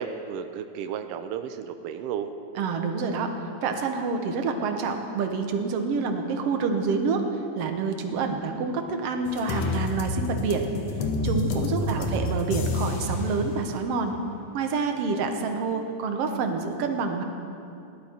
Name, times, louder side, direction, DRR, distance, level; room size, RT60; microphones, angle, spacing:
voice 1, 0.0-2.3 11.8-12.1, right 8 dB, 90° right, 8 dB, 1.3 m, -33 dB
voice 2, 2.6-3.3 3.6-7.2 7.6-10.7 11.2-14.2 14.5-17.2, right 4 dB, 65° right, 5 dB, 1.8 m, -27 dB
sound 1, 9.3-13.3, left 2 dB, 65° left, 1.9 m, -28 dB
19.0 x 11.5 x 4.4 m, 2.7 s
omnidirectional pair, 3.4 m